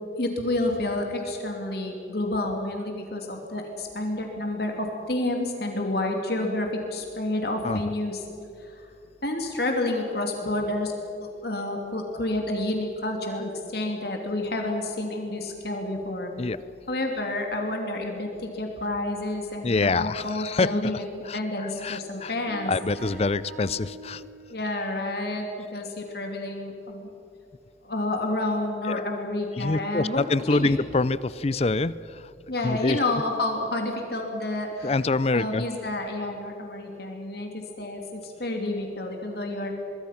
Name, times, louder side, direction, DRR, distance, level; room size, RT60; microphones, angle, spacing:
voice 1, 0.0-8.2 8.6-8.9 9.2-10.9 11.2-16.3 16.9-21.0 21.3-22.7 24.5-27.1 27.8-30.2 30.5-30.7 32.5-34.9 35.3-39.7, left 2 dB, 55° left, 2 dB, 2.8 m, -29 dB
voice 2, 19.6-21.0 21.2-22.3 22.6-24.3 28.9-29.0 29.6-32.3 32.6-33.2 34.8-35.7, left 3 dB, 35° left, 17 dB, 0.5 m, -26 dB
sound 1, 22.5-24.9, right 3 dB, 60° right, 5.3 m, -44 dB
25.0 x 22.0 x 5.9 m, 2.6 s
head